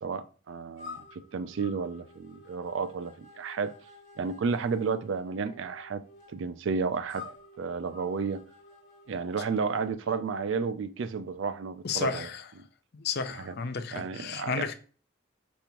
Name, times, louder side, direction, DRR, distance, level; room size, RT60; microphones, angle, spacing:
voice 1, 0.0-3.7 4.2-6.0 6.3-7.3 7.6-8.4 9.1-12.3 13.4-13.5 13.9-14.7, right 5 dB, 65° right, 0.4 m, -32 dB
sound 1, 0.8-9.9, left 4 dB, 35° left, 1.9 m, -51 dB
voice 2, 11.8-12.4 12.9-14.7, left 5 dB, 50° left, 0.5 m, -32 dB
5.3 x 3.3 x 3.0 m
head